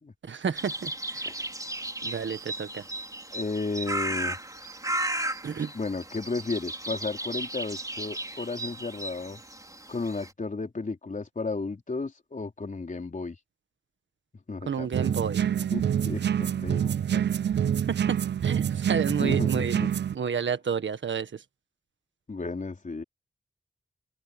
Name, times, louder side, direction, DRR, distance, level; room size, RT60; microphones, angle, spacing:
voice 1, 0.2-1.3 2.0-2.8 5.4-5.7 14.7-15.4 18.1-19.8 20.1-21.4, right 7 dB, 85° right, 1.5 m, -31 dB
sound 1, 0.6-10.3, right 1 dB, 20° right, 4.3 m, -35 dB
voice 2, 3.3-4.4 5.7-9.4 9.9-13.4 14.5-15.2 15.7-17.2 19.1-19.9 22.3-23.0, left 3 dB, 45° left, 4.3 m, -34 dB
sound 2, 14.9-20.2, right 9 dB, 70° right, 0.4 m, -26 dB
open air
wide cardioid pair, 100°, 19 cm